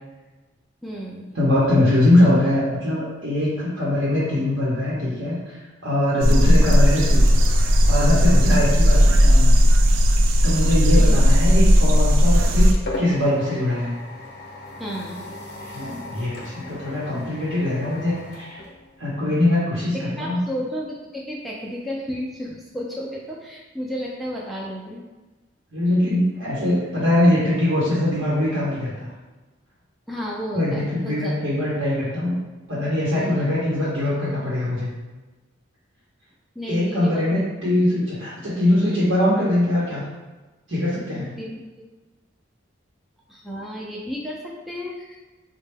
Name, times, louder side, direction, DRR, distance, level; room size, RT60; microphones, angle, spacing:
voice 1, 0.8-1.4 6.4-6.6 11.0-11.2 14.8-15.3 19.9-25.0 30.1-31.3 33.1-33.4 36.6-37.4 41.4-41.6 43.3-45.2, equal, ahead, -4 dB, 0.4 m, -32 dB
voice 2, 1.3-7.4 7.9-9.6 10.4-14.0 15.6-18.6 19.0-20.4 25.7-29.1 30.5-32.4 32.7-34.9 36.7-40.0 40.7-41.4, left 1 dB, 70° right, -8 dB, 0.9 m, -22 dB
sound 1, 6.2-12.7, equal, 90° right, 0.4 m, -15 dB
sound 2, 12.4-19.4, left 2 dB, 55° left, 0.6 m, -37 dB
4.2 x 2.2 x 3.3 m, 1.2 s
head